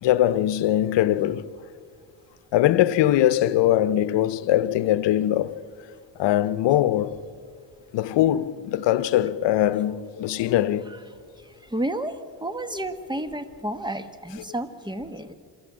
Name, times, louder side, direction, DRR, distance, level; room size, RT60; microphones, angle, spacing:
voice 1, 0.0-1.5 2.5-5.6 6.2-7.2 7.9-10.9, left 13 dB, 80° left, 0.8 m, -21 dB
voice 2, 11.4-15.3, right 1 dB, 10° right, 1.4 m, -31 dB
27.5 x 13.0 x 7.4 m
cardioid pair, 85°, 42 cm